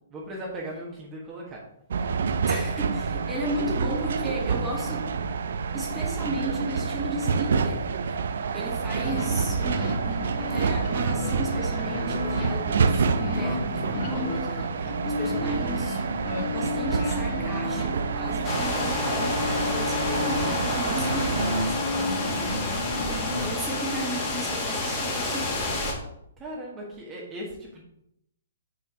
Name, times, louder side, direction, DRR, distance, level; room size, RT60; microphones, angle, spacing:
voice 1, 0.1-1.6 22.3-22.7 26.4-27.8, right 1 dB, 20° right, -4 dB, 1.5 m, -38 dB
sound 1, 1.9-21.6, right 5 dB, 65° right, 0.5 m, -28 dB
voice 2, 2.4-5.1 5.7-8.3 8.5-22.3 23.1-25.7, right 1 dB, 5° right, -4 dB, 1.7 m, -35 dB
sound 2, 9.0-23.5, left 2 dB, 45° left, 2.7 m, -32 dB
sound 3, 18.4-25.9, left 2 dB, 30° left, 2.0 m, -29 dB
5.8 x 4.4 x 5.0 m, 0.78 s
hypercardioid pair, 130°, 0 cm